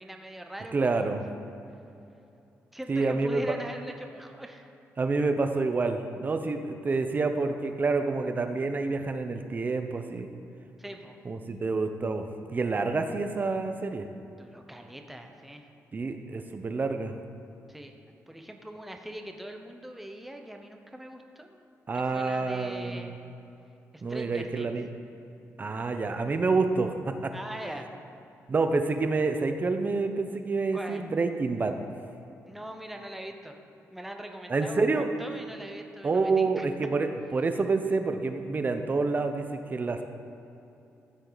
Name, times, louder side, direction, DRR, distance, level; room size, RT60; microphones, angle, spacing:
voice 1, 0.0-1.2 2.7-4.7 10.8-11.2 14.4-15.7 17.7-17.9 18.3-21.6 21.9-23.2 23.9-24.7 27.3-27.9 30.7-31.0 32.5-33.6 33.9-36.7, right 1 dB, 5° right, 3 dB, 0.9 m, -41 dB
voice 2, 0.7-1.3 2.9-3.5 5.0-10.3 11.2-14.1 15.9-17.1 21.9-23.2 24.0-24.9 25.6-27.4 28.5-31.8 34.5-35.1 36.0-40.0, right 3 dB, 35° right, 7 dB, 0.9 m, -28 dB
14.5 x 7.8 x 4.1 m, 2.8 s
cardioid pair, 100°, 5 cm